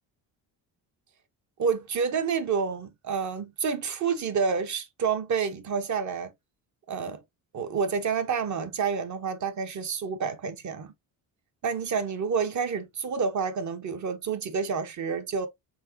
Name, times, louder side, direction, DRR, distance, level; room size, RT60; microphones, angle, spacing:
voice 1, 1.6-6.3 6.9-7.2 7.5-10.9 11.6-15.5, right 6 dB, 45° right, 1.1 m, -29 dB
4.5 x 3.9 x 2.7 m
cardioid pair, 110°, 40 cm